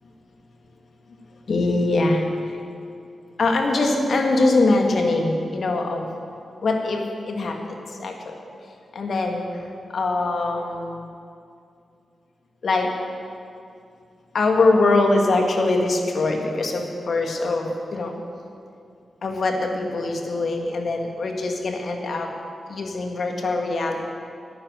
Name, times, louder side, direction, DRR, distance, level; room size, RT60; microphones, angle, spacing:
voice 1, 1.5-2.2 3.4-6.1 6.6-7.6 8.0-8.3 8.9-9.5 9.9-11.1 12.6-12.9 14.3-18.2 19.2-22.3 22.7-24.1, left 2 dB, 65° left, 3 dB, 1.8 m, -22 dB
11.0 x 10.0 x 7.5 m, 2.4 s
supercardioid pair, 40°, 0 cm